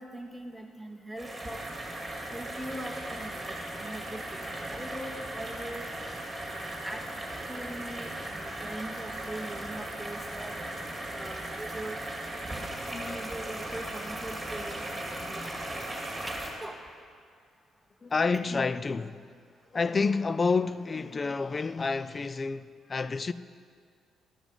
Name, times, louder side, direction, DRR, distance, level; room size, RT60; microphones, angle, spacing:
voice 1, 0.0-1.6 2.3-5.9 6.4-7.0 7.5-10.5 11.1-12.0 13.1-14.8 15.3-15.4 16.3-16.8, right 1 dB, ahead, 1.1 m, -41 dB
sound 1, 1.2-16.5, right 1 dB, 15° right, 2.1 m, -37 dB
voice 2, 12.8-13.3 14.9-15.7 18.0-19.4 19.7-23.3, left 4 dB, 35° left, 0.3 m, -30 dB
12.0 x 7.1 x 5.4 m
cardioid pair, 90°, 0 cm